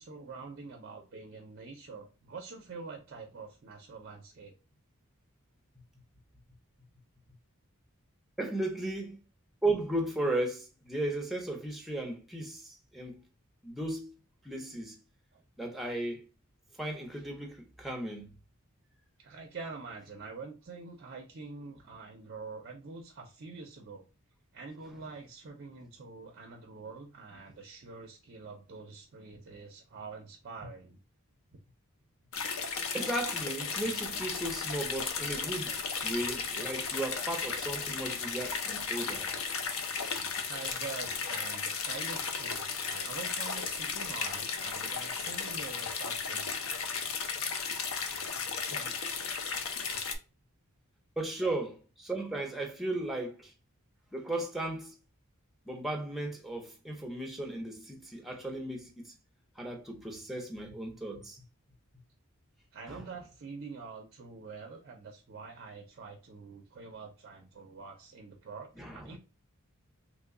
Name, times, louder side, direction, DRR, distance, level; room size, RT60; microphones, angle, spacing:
voice 1, 0.0-4.6 15.3-15.4 19.2-24.1 24.5-31.0 40.5-46.5 62.7-69.2, right 4 dB, 45° right, 0.4 m, -45 dB
voice 2, 8.4-9.2 9.6-13.2 13.6-14.1 14.4-14.9 15.6-16.2 16.8-18.3 32.9-35.8 36.0-39.3 48.5-48.9 51.2-53.5 54.1-54.9 55.7-59.1 59.6-61.4 62.9-63.0 68.8-69.1, right 1 dB, ahead, 0.6 m, -35 dB
sound 1, 32.3-50.2, left 5 dB, 65° left, 0.6 m, -35 dB
3.1 x 2.2 x 3.6 m
head